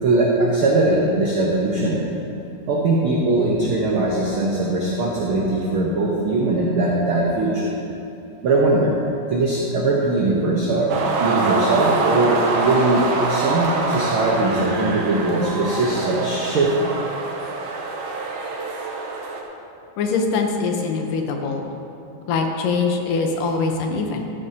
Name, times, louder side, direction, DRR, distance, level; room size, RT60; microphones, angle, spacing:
voice 1, 0.0-2.0 2.7-7.7 8.4-8.9 9.3-16.7, right 2 dB, 60° right, -4 dB, 1.4 m, -20 dB
sound 1, 10.9-19.4, right 3 dB, 75° right, 2.5 m, -25 dB
voice 2, 20.0-21.7 22.3-24.3, left 4 dB, 85° left, 3 dB, 2.6 m, -23 dB
13.5 x 12.5 x 2.9 m, 2.8 s
omnidirectional pair, 3.7 m